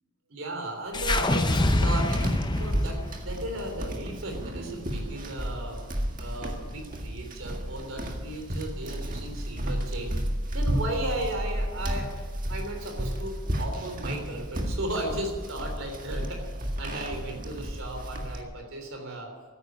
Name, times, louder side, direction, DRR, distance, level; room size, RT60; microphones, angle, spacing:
voice 1, 0.3-2.2 2.6-5.8 6.2-10.1 10.5-12.1 12.5-19.3, right 1 dB, 75° right, 3 dB, 3.5 m, -35 dB
sound 1, 0.9-5.2, left 1 dB, 20° left, 0.8 m, -27 dB
sound 2, 1.5-18.4, equal, 40° right, 1.8 m, -33 dB
14.5 x 10.5 x 9.4 m, 1.5 s
head